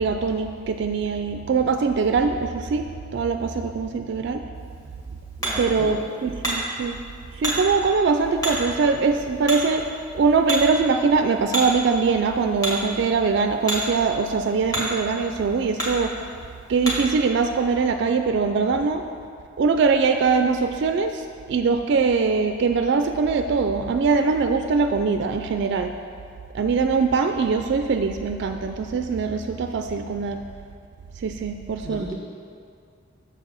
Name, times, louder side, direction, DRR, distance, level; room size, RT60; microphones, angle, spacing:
voice 1, 0.0-4.4 5.6-7.0 7.4-9.9 10.1-16.1 16.7-19.1 19.6-25.9 26.5-30.4 31.2-32.1, right 4 dB, 60° right, 6 dB, 0.3 m, -22 dB
Hammer, 4.5-17.2, right 1 dB, 15° left, 1.7 m, -32 dB
voice 2, 5.4-6.0 31.8-32.1, right 1 dB, ahead, -6 dB, 1.9 m, -34 dB
7.0 x 4.7 x 6.8 m, 2.3 s
head